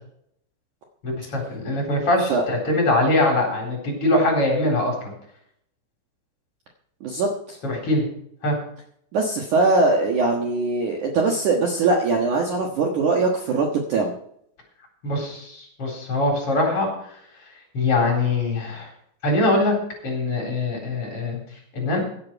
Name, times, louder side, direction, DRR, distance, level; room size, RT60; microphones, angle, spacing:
voice 1, 1.0-5.1 7.6-8.0 8.4-8.6 15.0-17.2 17.7-18.9 19.2-19.7 20.0-22.0, left 2 dB, 30° left, 0 dB, 4.3 m, -23 dB
voice 2, 7.0-7.6 9.1-14.2, right 3 dB, 85° right, 1 dB, 1.7 m, -21 dB
16.5 x 10.0 x 4.6 m, 0.69 s
omnidirectional pair, 6.0 m